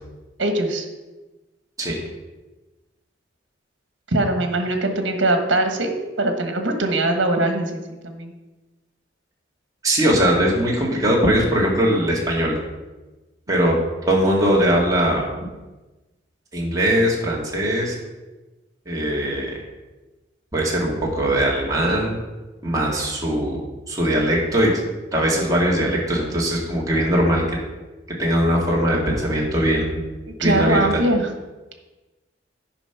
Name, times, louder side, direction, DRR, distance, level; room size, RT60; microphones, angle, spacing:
voice 1, 0.4-0.9 4.1-8.3 30.4-31.3, right 2 dB, 75° right, 5 dB, 1.4 m, -22 dB
voice 2, 9.8-12.5 13.5-13.7 14.1-15.3 16.5-18.0 18.9-19.5 20.5-22.2 22.6-23.6 23.9-24.7 25.1-27.6 28.2-30.0 30.4-31.0, equal, 20° right, -3 dB, 2.0 m, -20 dB
9.9 x 5.2 x 5.8 m, 1.1 s
head